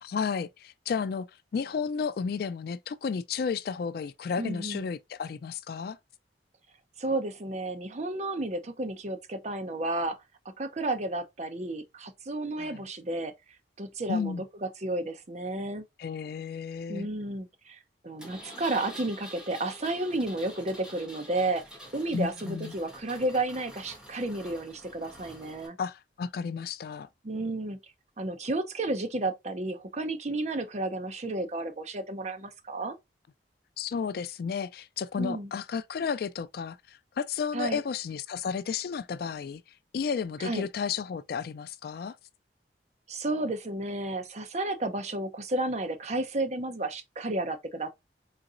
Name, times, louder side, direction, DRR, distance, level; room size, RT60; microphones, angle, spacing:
voice 1, 0.0-1.3 1.5-6.0 12.6-12.8 14.1-14.4 16.0-17.1 22.1-22.7 25.8-27.1 33.8-39.6 39.9-42.2, left 6 dB, 55° left, 0.3 m, -32 dB
voice 2, 4.4-4.8 7.0-10.2 10.6-13.3 13.8-14.3 14.6-15.8 16.9-21.6 21.9-25.8 27.2-27.8 28.2-33.0 35.2-35.5 37.5-37.8 40.4-40.7 43.1-47.9, right 2 dB, 40° right, 0.7 m, -32 dB
Engine, 18.2-25.7, equal, 5° right, 1.4 m, -47 dB
4.1 x 3.8 x 2.4 m
head